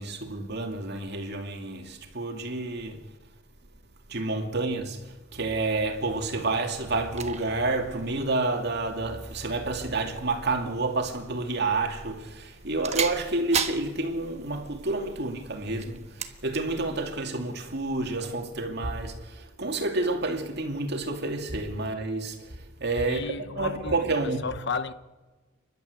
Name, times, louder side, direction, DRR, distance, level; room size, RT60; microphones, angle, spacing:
voice 1, 0.0-3.1 4.1-24.5, right 2 dB, 55° right, 2.6 m, -29 dB
sound 1, 5.9-18.4, right 7 dB, 35° right, 1.3 m, -39 dB
voice 2, 23.1-24.9, left 4 dB, 55° left, 1.0 m, -33 dB
29.5 x 12.0 x 8.2 m
head